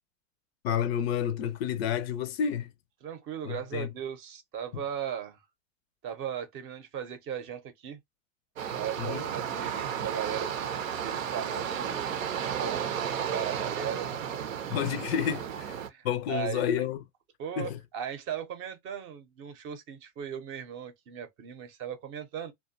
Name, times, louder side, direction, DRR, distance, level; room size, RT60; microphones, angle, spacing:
voice 1, 0.6-2.7 3.4-3.9 4.7-4.8 9.0-9.2 14.7-15.8 16.0-17.0 17.6-17.8, left 9 dB, 50° left, 0.5 m, -30 dB
voice 2, 3.0-5.4 6.0-8.0 8.7-12.2 12.6-14.1 15.4-15.5 15.9-16.9 17.4-22.5, right 8 dB, 30° right, 0.6 m, -38 dB
sound 1, 8.6-15.9, right 8 dB, 75° right, 0.6 m, -33 dB
2.6 x 2.2 x 2.5 m
hypercardioid pair, 95°, 39 cm